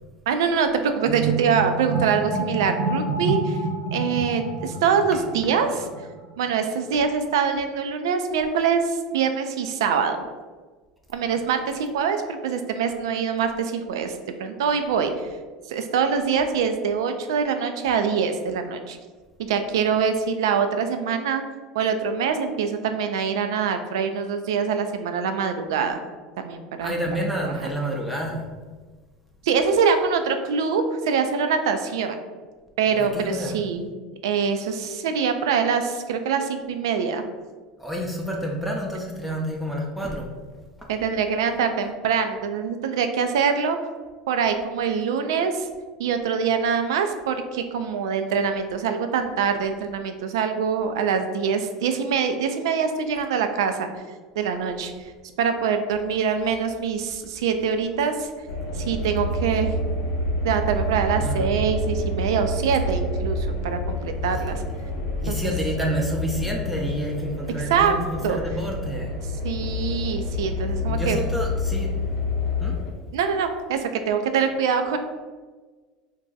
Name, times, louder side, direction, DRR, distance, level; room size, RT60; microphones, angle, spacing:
voice 1, 0.3-3.6 3.9-5.9 6.4-10.2 11.1-14.1 14.4-15.3 15.7-19.0 19.4-21.4 21.7-26.0 26.4-26.9 27.4-27.5 29.4-32.2 32.8-33.9 34.2-37.2 40.9-43.8 44.3-45.7 46.0-54.0 54.4-54.9 55.4-58.3 58.7-59.7 60.4-64.6 65.3-65.5 67.7-67.9 68.2-68.4 69.4-71.2 73.1-75.0, right 6 dB, 80° right, 7 dB, 0.3 m, -24 dB
sound 1, 1.0-6.3, right 4 dB, 40° right, 0.7 m, -28 dB
voice 2, 26.8-28.5 33.0-33.6 37.8-40.3 40.8-40.9 61.2-61.5 64.3-64.4 65.2-69.1 70.9-71.9 72.6-72.8, right 1 dB, 5° right, -1 dB, 0.5 m, -29 dB
sound 2, 58.5-72.9, left 1 dB, 75° left, 0.6 m, -28 dB
2.6 x 2.2 x 3.8 m, 1.4 s
hypercardioid pair, 90°, 2 cm